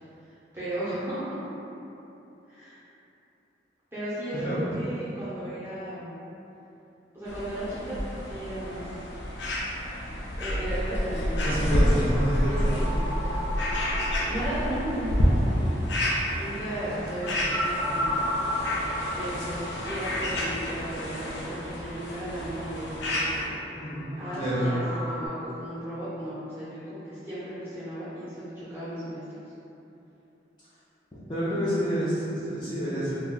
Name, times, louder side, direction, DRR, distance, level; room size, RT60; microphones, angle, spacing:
voice 1, 0.5-1.4 2.5-2.8 3.9-6.2 7.1-8.0 8.3-8.9 10.4-11.9 12.4-13.5 14.3-15.5 16.3-18.3 19.1-23.5 24.2-29.2, right 1 dB, 10° right, -14 dB, 0.8 m, -35 dB
voice 2, 4.3-4.8 11.4-12.8 23.7-24.8 31.3-33.1, equal, 25° left, -12 dB, 0.5 m, -28 dB
sound 1, 7.3-23.5, equal, 85° left, 0.5 m, -29 dB
sound 2, 11.3-25.3, equal, 75° right, 0.5 m, -36 dB
2.5 x 2.2 x 3.7 m, 2.9 s
head